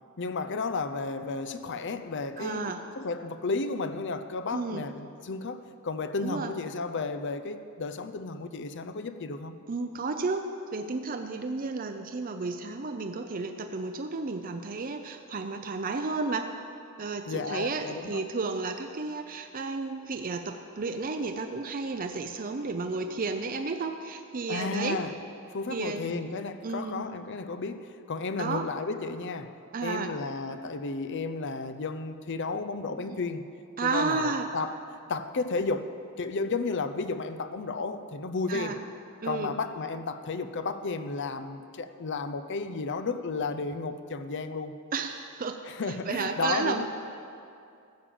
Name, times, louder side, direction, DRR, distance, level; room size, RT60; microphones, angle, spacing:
voice 1, 0.2-9.6 17.3-18.2 24.5-25.1 25.5-29.5 29.8-33.5 33.8-34.8 35.1-38.8 39.2-44.8 45.7-46.8, left 3 dB, 55° left, 10 dB, 0.6 m, -33 dB
voice 2, 2.4-2.8 4.5-4.9 6.2-6.5 9.7-10.4 10.7-16.5 17.0-25.0 25.7-26.2 26.6-27.0 28.4-28.7 29.7-30.1 33.0-33.2 33.8-34.5 38.5-38.8 39.2-39.5 44.9-45.6 45.9-46.8, right 4 dB, 40° right, 6 dB, 0.5 m, -32 dB
14.5 x 7.4 x 7.0 m, 2.5 s
head